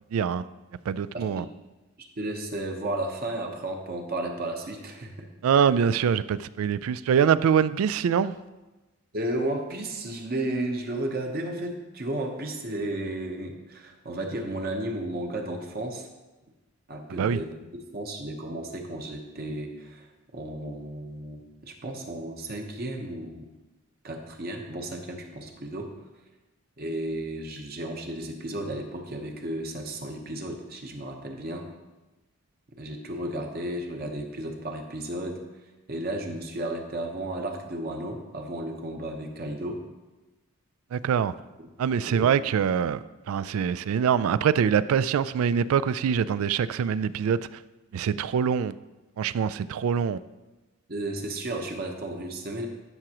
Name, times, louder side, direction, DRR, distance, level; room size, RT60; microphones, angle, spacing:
voice 1, 0.1-0.4 0.9-1.4 5.4-8.3 17.1-17.4 40.9-41.3 41.8-47.4 47.9-48.7 49.2-50.2, right 7 dB, 80° right, 0.3 m, -24 dB
voice 2, 2.0-5.3 9.1-16.1 16.9-17.5 17.9-23.5 24.0-25.9 26.8-31.7 32.8-35.4 35.9-39.8 41.6-41.7 42.0-42.3 50.9-52.7, right 1 dB, 45° right, 1.0 m, -33 dB
12.5 x 6.0 x 3.0 m
head